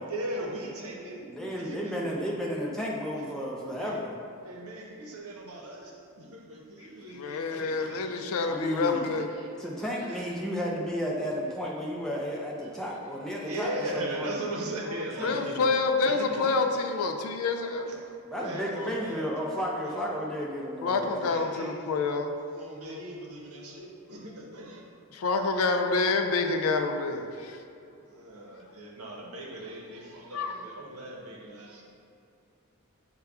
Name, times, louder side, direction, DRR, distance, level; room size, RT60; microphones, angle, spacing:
voice 1, 0.1-2.0 3.1-3.4 3.7-4.0 4.4-8.6 8.9-9.5 10.0-10.3 12.3-12.7 13.4-15.6 16.0-16.5 17.9-18.0 18.4-19.3 19.8-20.0 20.9-21.9 22.5-24.8 28.0-31.8, right 1 dB, 80° right, -1 dB, 0.8 m, -39 dB
voice 2, 1.3-4.1 8.4-9.1 9.6-14.4 17.6-21.4, equal, ahead, -4 dB, 0.5 m, -33 dB
voice 3, 7.2-9.3 14.9-17.9 20.8-22.4 22.9-23.0 25.1-27.6 30.3-30.5, left 4 dB, 75° left, 6 dB, 0.4 m, -28 dB
6.6 x 2.2 x 3.5 m, 2.6 s
head